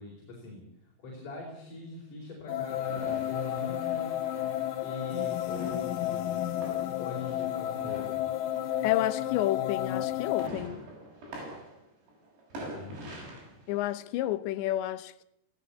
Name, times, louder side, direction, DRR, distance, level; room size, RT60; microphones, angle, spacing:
voice 1, 0.0-4.4 4.8-6.6 7.0-8.3 12.6-13.2, left 1 dB, 50° left, 6.0 m, -43 dB
sound 1, 2.5-10.5, left 12 dB, 70° left, 2.2 m, -32 dB
sound 2, 2.7-9.5 9.8-14.2, right 1 dB, 90° right, 9.2 m, -46 dB
voice 2, 8.8-10.8 13.7-15.2, left 14 dB, 90° left, 3.2 m, -30 dB
18.0 x 17.5 x 8.5 m
omnidirectional pair, 5.0 m